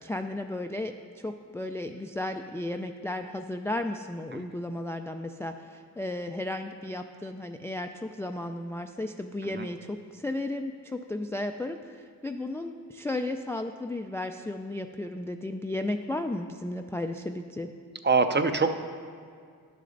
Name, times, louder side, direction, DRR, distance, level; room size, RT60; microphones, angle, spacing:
voice 1, 0.0-17.7, left 1 dB, 5° left, 6 dB, 0.3 m, -34 dB
voice 2, 18.0-18.8, right 4 dB, 25° right, 8 dB, 0.6 m, -24 dB
11.0 x 6.6 x 3.9 m, 2.2 s
cardioid pair, 50°, 41 cm